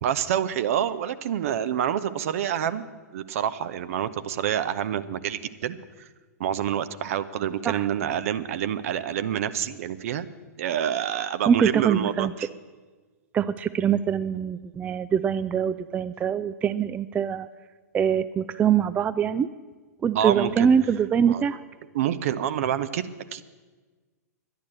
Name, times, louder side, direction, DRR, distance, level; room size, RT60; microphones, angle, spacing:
voice 1, 0.0-2.8 3.1-6.1 6.4-10.3 10.6-12.5 20.1-20.7 21.2-21.4 21.9-23.4, right 10 dB, 55° right, 13 dB, 0.7 m, -27 dB
voice 2, 11.5-12.3 13.3-17.5 17.9-19.5 20.0-21.6, right 8 dB, 15° right, 14 dB, 0.3 m, -23 dB
11.0 x 10.5 x 7.7 m, 1.4 s
figure-of-eight pair, 105°, 9 cm